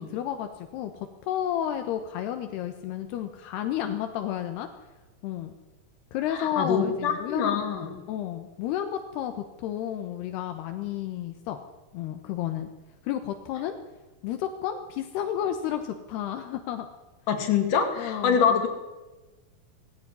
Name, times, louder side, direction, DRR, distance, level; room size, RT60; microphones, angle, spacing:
voice 1, 0.0-4.7 5.2-5.5 6.1-7.6 8.1-11.6 11.9-12.7 13.0-13.8 14.2-16.9 18.0-18.6, left 10 dB, 80° left, 7 dB, 3.2 m, -32 dB
voice 2, 6.4-8.0 17.3-18.7, left 7 dB, 55° left, 6 dB, 4.0 m, -25 dB
19.5 x 16.5 x 9.8 m, 1.1 s
omnidirectional pair, 4.7 m